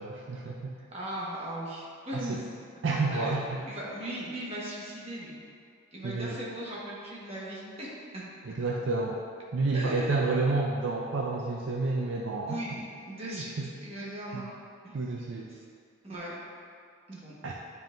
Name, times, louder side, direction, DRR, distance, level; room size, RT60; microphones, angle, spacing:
voice 1, 0.0-0.8 2.1-2.4 2.8-3.6 6.0-6.4 8.4-9.2 9.5-12.6 13.3-13.7 14.3-14.4 14.9-15.5 17.4-17.5, right 3 dB, 60° right, -1 dB, 0.4 m, -30 dB
voice 2, 0.9-2.4 3.1-5.3 5.9-8.2 9.7-10.2 12.5-13.5 13.8-14.5 14.8-14.9 15.5-15.6 16.0-16.4 17.1-17.3, right 1 dB, 30° right, -6 dB, 1.3 m, -38 dB
9.3 x 5.5 x 2.5 m, 2.3 s
head